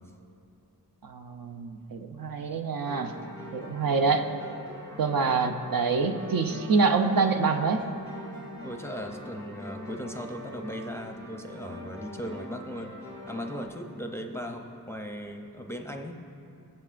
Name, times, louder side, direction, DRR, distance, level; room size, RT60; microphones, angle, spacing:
voice 1, 1.0-3.1 3.5-4.3 5.0-7.9, right 4 dB, 60° right, 5 dB, 0.6 m, -26 dB
sound 1, 2.8-13.7, left 1 dB, 45° right, 2.8 m, -43 dB
voice 2, 8.6-12.9 13.3-16.2, equal, 5° left, 2 dB, 0.6 m, -38 dB
21.5 x 7.7 x 2.5 m, 2.6 s
wide cardioid pair, 120°, 39 cm